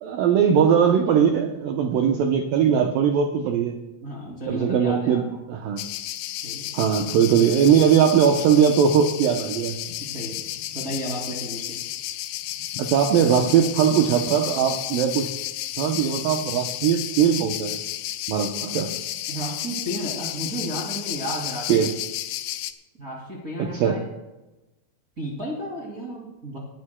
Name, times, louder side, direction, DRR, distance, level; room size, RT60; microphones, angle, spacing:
voice 1, 0.0-3.8 4.5-5.9 6.7-9.8 12.8-15.4 15.7-17.8 18.3-19.0 21.7-22.0 23.6-24.0, right 8 dB, 90° right, 4 dB, 1.9 m, -20 dB
voice 2, 4.0-5.2 6.4-6.7 10.0-10.4 10.7-11.8 19.3-21.8 23.0-24.0 25.2-26.6, right 1 dB, 25° right, -4 dB, 1.8 m, -32 dB
sound 1, 5.8-22.7, left 14 dB, 80° left, 2.9 m, -32 dB
20.5 x 12.5 x 2.2 m, 1.0 s
omnidirectional pair, 5.2 m